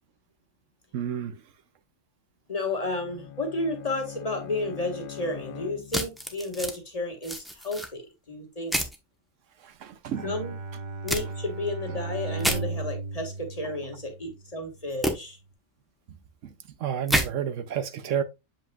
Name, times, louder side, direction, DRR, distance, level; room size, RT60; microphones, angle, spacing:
voice 1, 0.9-1.4 9.6-10.3 16.4-16.5 16.8-18.2, right 9 dB, 75° right, 1.0 m, -30 dB
voice 2, 2.5-8.7 10.2-10.6 11.0-15.4, left 2 dB, 30° left, 1.8 m, -32 dB
Bowed string instrument, 2.7-6.4, left 9 dB, 50° left, 0.8 m, -42 dB
sound 1, 5.9-6.8 7.2-7.9 8.7-9.0 11.1-11.2 12.4-12.6 15.0-15.1 17.1-17.3, equal, ahead, 0.9 m, -27 dB
Bowed string instrument 2, 10.1-14.5, right 3 dB, 45° right, 0.7 m, -35 dB
7.6 x 5.4 x 2.3 m
omnidirectional pair, 1.3 m